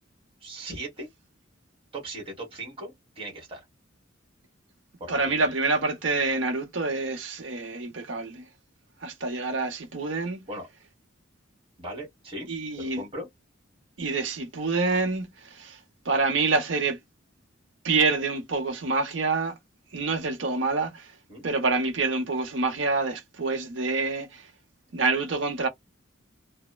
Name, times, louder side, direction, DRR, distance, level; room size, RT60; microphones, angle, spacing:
voice 1, 0.4-1.1 1.9-3.6 5.0-5.5 10.5-10.7 11.8-12.5 12.8-13.3 21.3-21.4, right 1 dB, 30° right, 1.3 m, -38 dB
voice 2, 5.1-8.5 9.0-10.5 12.5-13.0 14.0-15.8 16.0-17.0 17.8-19.6 19.9-21.1 21.4-24.4 24.9-25.7, right 3 dB, 65° right, 0.7 m, -27 dB
2.9 x 2.0 x 2.2 m
head